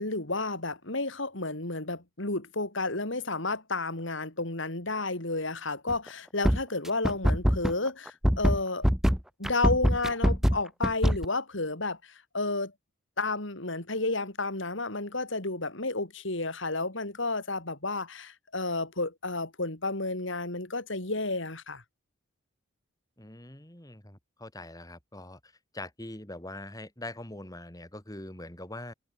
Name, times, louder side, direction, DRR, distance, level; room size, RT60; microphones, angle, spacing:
voice 1, 0.0-8.9 9.4-12.0 12.3-12.7 13.2-21.8, left 2 dB, 65° left, 3.6 m, -31 dB
sound 1, 5.9-6.1 6.4-11.3, equal, ahead, 0.5 m, -23 dB
voice 2, 23.2-28.9, left 1 dB, 15° left, 2.8 m, -43 dB
head